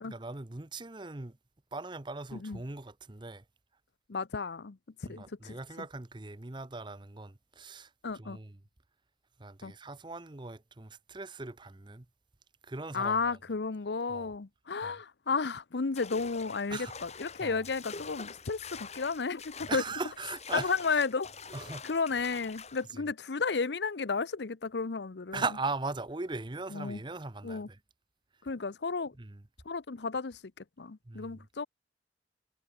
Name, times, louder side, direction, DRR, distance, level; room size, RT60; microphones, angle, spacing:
voice 1, 0.1-1.4 1.7-3.4 5.0-8.6 9.4-12.0 12.6-13.4 14.1-14.3 14.8-14.9 16.7-16.9 17.4-17.6 19.7-20.7 21.5-21.8 22.9-23.0 25.3-27.8 29.2-29.4 31.1-31.4, right 3 dB, 25° right, 0.9 m, -39 dB
voice 2, 2.3-2.6 4.1-4.8 5.1-5.9 8.0-8.4 9.6-9.7 12.9-19.8 20.5-21.3 21.8-25.4 26.7-27.0 27.4-27.7 28.4-29.1 29.7-30.4 30.8-31.7, left 4 dB, 70° left, 0.7 m, -33 dB
sound 1, 16.0-22.9, left 5 dB, 35° left, 6.1 m, -46 dB
head